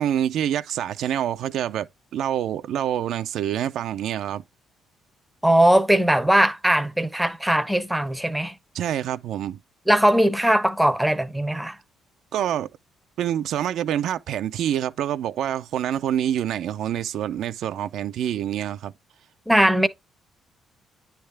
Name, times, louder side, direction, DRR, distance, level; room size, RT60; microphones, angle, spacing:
voice 1, 0.0-4.4 8.7-9.6 12.3-12.7 13.2-18.9, right 10 dB, 70° right, 0.4 m, -26 dB
voice 2, 5.4-8.5 9.9-11.8 19.5-19.9, right 1 dB, 5° right, 0.6 m, -19 dB
9.6 x 3.4 x 3.3 m
cardioid pair, 120°, 0 cm